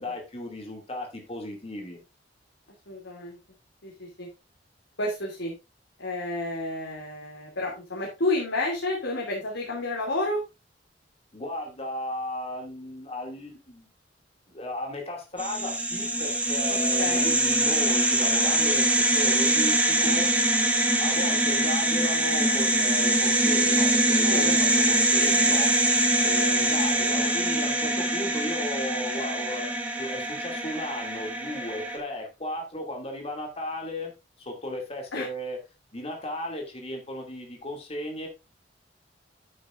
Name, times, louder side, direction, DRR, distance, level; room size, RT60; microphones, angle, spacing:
voice 1, 0.0-2.0 11.3-13.9 14.5-20.3 21.0-25.7 26.2-29.7 30.0-34.1 34.4-35.6 35.9-38.3, left 1 dB, 35° left, 2 dB, 2.5 m, -35 dB
voice 2, 2.9-3.4 3.8-4.3 5.0-5.6 6.0-10.4 17.0-17.3 24.2-24.7 35.1-35.3, left 2 dB, 90° left, -1 dB, 2.9 m, -30 dB
sound 1, 15.4-32.0, right 1 dB, 10° right, 1.7 m, -23 dB
10.5 x 9.3 x 2.6 m, 0.26 s
head